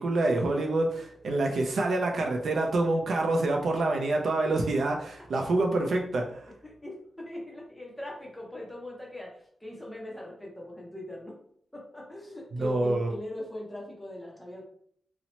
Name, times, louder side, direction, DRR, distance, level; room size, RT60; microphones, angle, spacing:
voice 1, 0.0-6.4 12.5-13.1, right 2 dB, 60° right, 2 dB, 0.4 m, -27 dB
voice 2, 6.6-11.3 11.7-14.7, left 1 dB, 5° left, -2 dB, 0.6 m, -40 dB
2.8 x 2.0 x 2.8 m, 0.64 s
wide cardioid pair, 175°, 0 cm